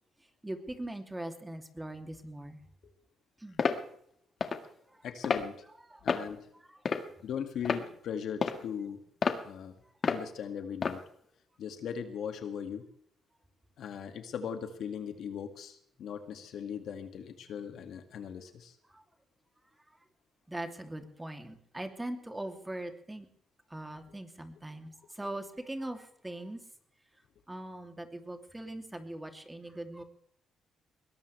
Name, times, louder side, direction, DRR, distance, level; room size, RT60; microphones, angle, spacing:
voice 1, 0.4-2.6 3.4-3.6 4.9-5.0 5.8-6.1 6.5-6.8 18.9-19.0 20.5-23.3 23.7-26.6 27.5-30.0, right 1 dB, 10° right, 5 dB, 2.9 m, -41 dB
sound 1, 3.6-3.8 4.4-4.6 5.2-5.5 6.1-6.3 6.9-7.2 7.7-7.8 8.4-8.6 9.2-9.4 10.0-10.2 10.8-11.0, left 5 dB, 45° left, 1.9 m, -29 dB
voice 2, 5.0-5.6 6.0-6.5 7.2-9.0 9.4-9.8 10.1-11.0 11.6-12.9 13.8-18.8, left 7 dB, 70° left, 6 dB, 2.2 m, -39 dB
22.0 x 18.5 x 3.4 m, 0.66 s
cardioid pair, 90°, 0 cm